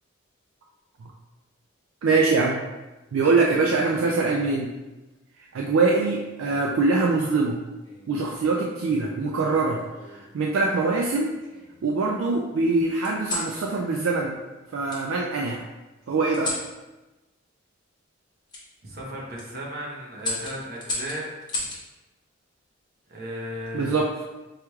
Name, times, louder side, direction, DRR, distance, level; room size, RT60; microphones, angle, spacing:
voice 1, 2.0-2.6 3.1-4.7 5.5-7.6 8.1-9.8 10.1-11.3 11.8-14.3 14.7-15.6 16.1-16.6 23.7-24.1, right 3 dB, 70° right, -1 dB, 0.4 m, -23 dB
sound 1, 5.7-6.8 7.8-8.2 9.5-10.3 10.9-11.8 13.0-13.5 14.9-15.0 16.3-16.7 18.5-18.6 19.2-19.5 20.2-21.8 23.3-23.7, left 2 dB, 20° left, 0.9 m, -35 dB
voice 2, 18.8-21.6 23.1-23.9, equal, 50° right, -3 dB, 0.9 m, -35 dB
4.7 x 3.0 x 2.3 m, 1.1 s
head